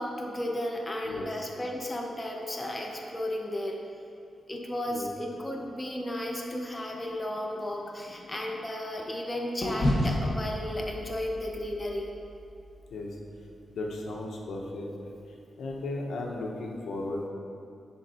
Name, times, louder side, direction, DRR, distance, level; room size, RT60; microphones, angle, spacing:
voice 1, 0.0-3.8 4.5-12.1, left 1 dB, 15° left, 0 dB, 0.4 m, -34 dB
sound 1, 6.9-9.2 9.6-13.8, left 1 dB, 35° left, 1.1 m, -33 dB
voice 2, 13.7-14.9 15.6-17.3, left 2 dB, 85° left, -1 dB, 0.7 m, -35 dB
10.0 x 3.5 x 2.8 m, 2.6 s
wide cardioid pair, 165°, 0 cm